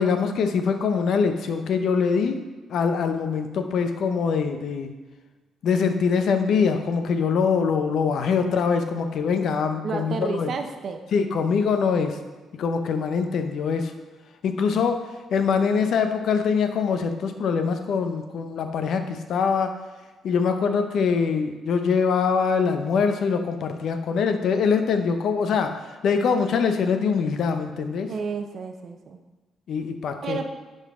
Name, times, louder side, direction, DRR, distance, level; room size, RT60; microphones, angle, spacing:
voice 1, 0.0-2.4 2.7-4.9 5.6-10.5 11.1-12.2 12.6-13.9 14.4-15.0 15.3-19.7 20.2-28.1 29.7-30.4, left 5 dB, 70° left, 7 dB, 0.7 m, -23 dB
voice 2, 9.8-11.0 28.1-29.2 30.2-30.4, right 5 dB, 55° right, 6 dB, 0.7 m, -31 dB
10.5 x 4.0 x 3.7 m, 1.2 s
cardioid pair, 90°, 0 cm